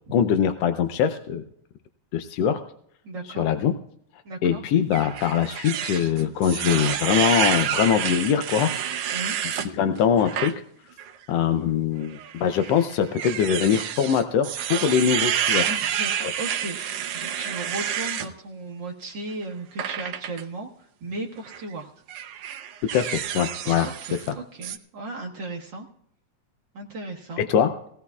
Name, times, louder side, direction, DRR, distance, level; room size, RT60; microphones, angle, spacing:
voice 1, 0.1-1.4 2.1-2.6 3.4-3.7 4.4-8.7 9.4-10.6 11.3-15.7 22.9-23.9 27.4-27.7, left 8 dB, 75° left, 8 dB, 1.5 m, -22 dB
voice 2, 3.0-3.5 4.2-4.6 9.1-9.4 15.7-21.9 23.6-25.9 26.7-27.5, right 2 dB, 50° right, -1 dB, 1.6 m, -36 dB
sound 1, 4.9-9.7 10.2-10.5 11.0-11.1 12.1-18.3 19.8-20.4 21.4-21.6 22.1-24.3 24.6-24.8, right 9 dB, 80° right, 1.3 m, -29 dB
21.0 x 16.5 x 2.4 m, 0.69 s
omnidirectional pair, 3.5 m